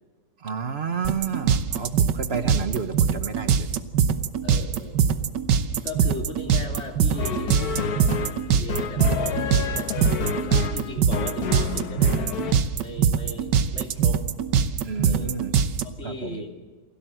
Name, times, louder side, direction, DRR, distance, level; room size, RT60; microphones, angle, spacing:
voice 1, 0.4-3.7 14.8-15.5 16.0-16.4, right 6 dB, 40° right, 9 dB, 1.0 m, -30 dB
sound 1, 1.0-15.8, right 7 dB, 65° right, 1.6 m, -22 dB
voice 2, 4.4-5.0 5.8-14.4 15.0-15.4 15.8-16.6, left 2 dB, 35° left, 2 dB, 3.1 m, -38 dB
sound 2, 7.1-12.5, left 6 dB, 55° left, 1.5 m, -29 dB
28.0 x 17.5 x 7.7 m, 1.4 s
omnidirectional pair, 2.1 m